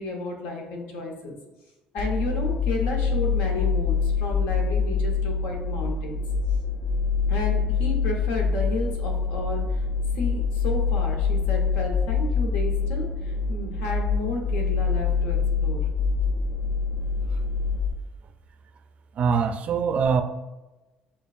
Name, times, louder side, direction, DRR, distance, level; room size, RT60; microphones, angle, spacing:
voice 1, 0.0-1.4 1.9-6.2 7.3-9.9 10.2-15.8, left 3 dB, 90° left, 1 dB, 1.0 m, -32 dB
sound 1, 2.0-17.9, left 5 dB, 70° left, 0.5 m, -25 dB
voice 2, 19.2-20.2, right 6 dB, 50° right, 9 dB, 0.3 m, -23 dB
7.0 x 2.3 x 2.5 m, 1.1 s
cardioid pair, 120°, 3 cm